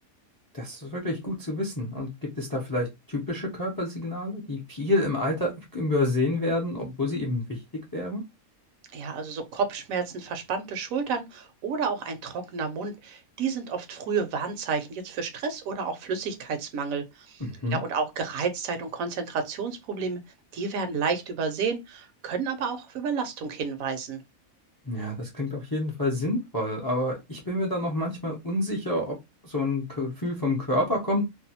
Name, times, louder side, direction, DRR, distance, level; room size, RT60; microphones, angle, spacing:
voice 1, 0.5-2.1 2.4-7.6 7.9-8.2 17.4-17.8 24.8-29.2 29.4-31.3, left 1 dB, 35° left, 0.3 m, -28 dB
voice 2, 8.9-17.4 17.7-20.2 20.5-24.2, right 5 dB, 75° right, 1.0 m, -30 dB
2.6 x 2.2 x 2.7 m
omnidirectional pair, 1.5 m